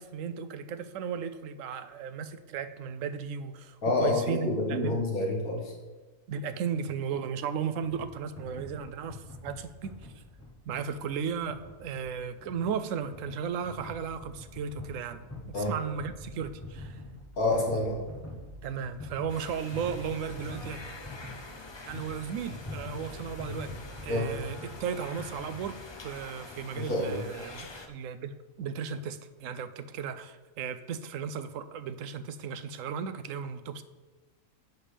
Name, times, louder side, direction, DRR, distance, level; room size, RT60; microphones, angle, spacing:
voice 1, 0.0-5.0 6.3-10.2 10.7-15.2 15.7-17.0 18.6-20.8 21.9-23.7 24.0-25.8 26.0-33.8, right 7 dB, 70° right, 11 dB, 0.9 m, -35 dB
voice 2, 3.8-5.7 15.5-15.7 17.4-18.0 24.1-24.3 26.7-27.2, left 2 dB, 90° left, -2 dB, 2.2 m, -28 dB
sound 1, 7.8-26.2, left 1 dB, 10° left, 1.0 m, -45 dB
sound 2, 19.3-27.9, left 2 dB, 35° left, 0.4 m, -46 dB
10.0 x 7.3 x 3.4 m, 1.3 s
omnidirectional pair, 1.5 m